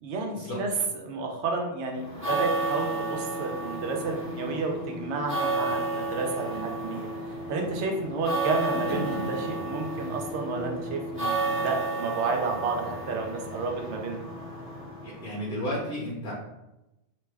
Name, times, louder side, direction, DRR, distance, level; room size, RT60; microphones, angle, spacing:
voice 1, 0.0-7.1 7.5-14.2, right 3 dB, 85° right, 2 dB, 0.9 m, -31 dB
sound 1, 2.0-15.5, right 2 dB, 15° right, 0.7 m, -32 dB
voice 2, 15.0-16.3, equal, 55° left, -5 dB, 0.8 m, -33 dB
2.8 x 2.2 x 3.2 m, 0.95 s
omnidirectional pair, 1.1 m